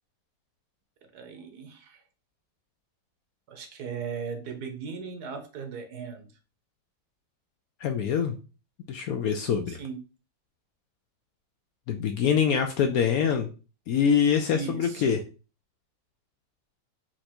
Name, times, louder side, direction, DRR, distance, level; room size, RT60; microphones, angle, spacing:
voice 1, 1.1-2.0 3.5-6.3 9.7-10.0 14.5-15.1, right 6 dB, 70° right, 6 dB, 1.3 m, -37 dB
voice 2, 7.8-8.3 8.9-9.8 11.9-13.5 13.9-15.2, left 7 dB, 70° left, 5 dB, 0.9 m, -24 dB
4.4 x 2.5 x 4.3 m, 0.33 s
omnidirectional pair, 1.9 m